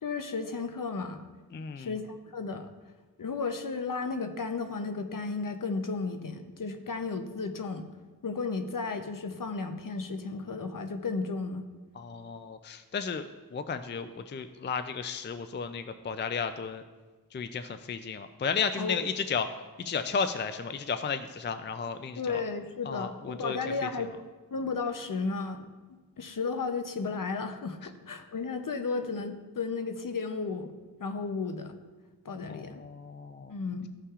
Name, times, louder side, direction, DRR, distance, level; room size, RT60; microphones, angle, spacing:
voice 1, 0.0-1.2 1.8-2.7 3.2-7.9 8.2-11.7 18.8-19.0 22.2-24.2 24.5-25.7 26.2-30.7 31.0-31.7 32.2-32.8 33.5-33.9, left 4 dB, 60° left, 7 dB, 0.7 m, -34 dB
voice 2, 1.5-1.9 12.0-16.8 17.3-19.5 19.8-22.4 22.9-23.6 32.5-33.5, left 6 dB, 30° left, 9 dB, 0.4 m, -34 dB
14.5 x 5.6 x 2.4 m, 1.3 s
wide cardioid pair, 70°, 37 cm